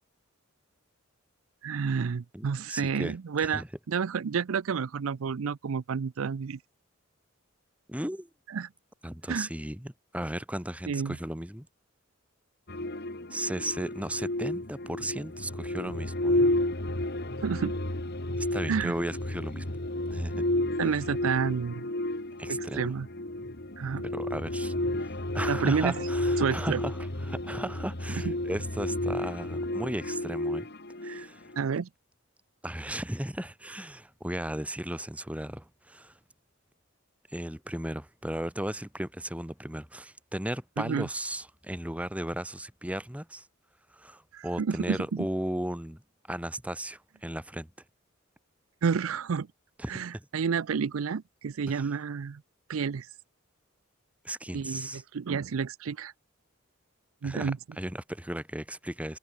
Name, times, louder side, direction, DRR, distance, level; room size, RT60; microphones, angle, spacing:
voice 1, 1.6-6.6 8.5-8.7 9.3-9.5 10.9-11.2 17.4-17.7 18.7-18.9 20.8-21.9 22.5-23.1 23.8-24.0 25.5-26.1 26.4-26.8 28.3-28.4 31.0-31.3 31.6-31.9 40.8-41.1 44.3-45.0 48.8-49.5 49.9-52.4 52.7-53.1 54.5-56.1 57.2-57.6, right 6 dB, 85° right, 0.5 m, -30 dB
voice 2, 2.3-3.1 3.4-3.7 7.9-8.3 9.0-11.7 13.3-16.5 18.4-19.7 20.1-20.5 22.4-22.8 24.0-24.7 25.0-30.7 31.0-31.5 32.6-36.1 37.3-43.5 43.9-46.0 46.3-47.7 49.8-50.3 51.7-51.9 54.2-55.0 57.2-59.2, right 1 dB, 5° right, 1.9 m, -35 dB
sound 1, 12.7-31.6, left 1 dB, 50° left, 2.5 m, -32 dB
open air
head